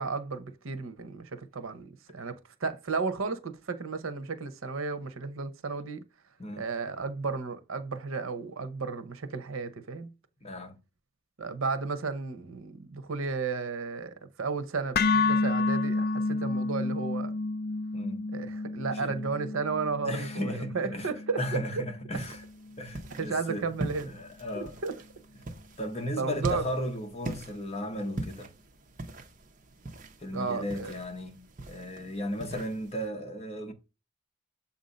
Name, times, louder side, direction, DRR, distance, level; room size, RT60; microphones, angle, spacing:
voice 1, 0.0-6.0 6.6-10.1 11.4-17.4 18.3-21.8 23.2-24.1 24.5-24.9 26.2-26.7 30.3-30.9, right 4 dB, 85° right, 0.8 m, -33 dB
voice 2, 10.4-10.8 17.9-18.3 18.9-19.2 20.0-21.1 21.4-22.4 22.8-23.7 24.0-24.7 25.8-28.5 30.2-33.7, equal, 30° left, 0.9 m, -35 dB
sound 1, 14.9-23.1, left 3 dB, 45° left, 0.4 m, -31 dB
sound 2, 22.1-33.1, right 2 dB, 40° right, 0.8 m, -42 dB
7.1 x 2.7 x 5.2 m
head